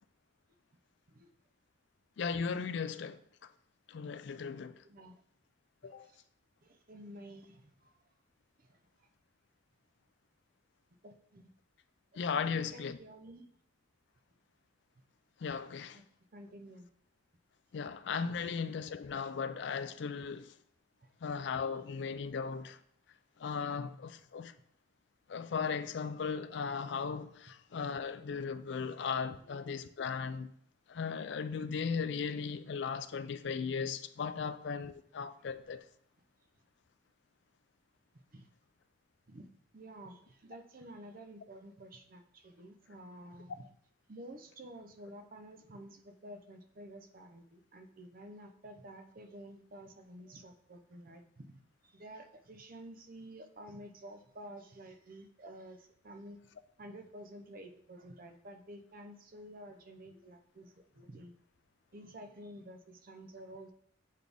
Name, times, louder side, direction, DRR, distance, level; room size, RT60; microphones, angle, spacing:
voice 1, 2.2-3.5 3.9-4.8 5.8-6.1 12.1-13.0 15.4-16.0 17.7-20.5 21.2-22.8 23.4-24.6 25.3-30.5 30.9-35.9, left 5 dB, 60° left, 0.4 m, -37 dB
voice 2, 4.8-5.2 6.0-6.2 6.6-8.0 8.6-9.1 11.0-11.5 12.1-12.2 12.5-13.5 15.9-16.0 16.3-16.9 21.0-21.1 29.3-29.6 38.1-38.5 39.3-39.5 39.7-43.7 44.1-56.4 56.8-61.3 61.9-63.7, right 1 dB, 45° right, 0.6 m, -51 dB
7.3 x 4.1 x 3.5 m
head